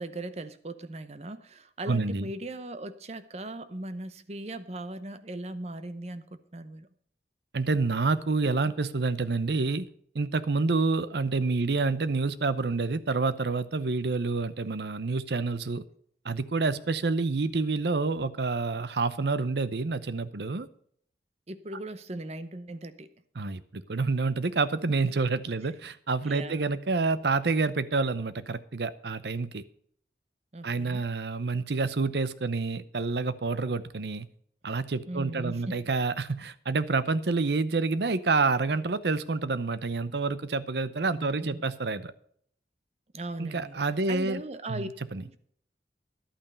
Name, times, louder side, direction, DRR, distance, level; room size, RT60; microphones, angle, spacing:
voice 1, 0.0-6.9 21.5-23.1 25.6-25.7 26.2-26.7 30.5-31.1 35.0-35.8 41.1-41.6 43.1-43.8 44.1-44.9 45.2-45.4, right 1 dB, 35° right, 12 dB, 0.8 m, -38 dB
voice 2, 1.9-2.3 7.5-9.9 10.1-15.8 16.2-20.7 23.4-29.6 30.6-34.3 34.6-42.1 43.4-44.4 44.7-45.2, right 3 dB, 70° right, 15 dB, 0.7 m, -28 dB
11.5 x 8.7 x 5.4 m, 0.62 s
head